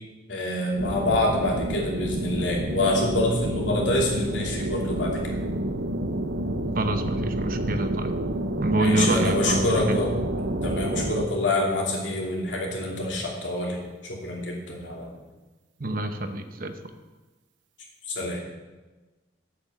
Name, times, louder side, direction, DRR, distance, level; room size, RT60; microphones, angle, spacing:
voice 1, 0.3-5.2 8.7-10.1 10.6-15.1 18.1-18.4, left 1 dB, 85° left, -1 dB, 2.8 m, -26 dB
sound 1, 0.8-11.3, right 1 dB, 85° right, 0.8 m, -29 dB
voice 2, 6.7-8.2 8.6-9.6 9.9-10.0 15.8-16.9, right 2 dB, 50° right, 8 dB, 0.9 m, -26 dB
8.6 x 8.2 x 7.2 m, 1.2 s
head